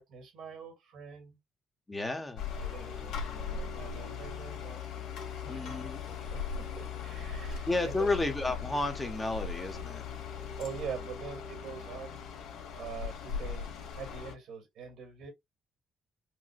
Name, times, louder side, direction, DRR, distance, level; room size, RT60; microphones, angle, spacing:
voice 1, 0.0-1.4 2.6-5.8 6.1-8.1 10.6-12.2 12.8-13.7 13.9-15.3, right 6 dB, 75° right, 2.5 m, -44 dB
voice 2, 1.9-2.7 5.5-6.0 7.4-10.0, left 2 dB, 15° left, 1.4 m, -32 dB
sound 1, 2.4-14.3, left 6 dB, 85° left, 1.7 m, -39 dB
4.7 x 2.7 x 2.5 m
cardioid pair, 90°, 0 cm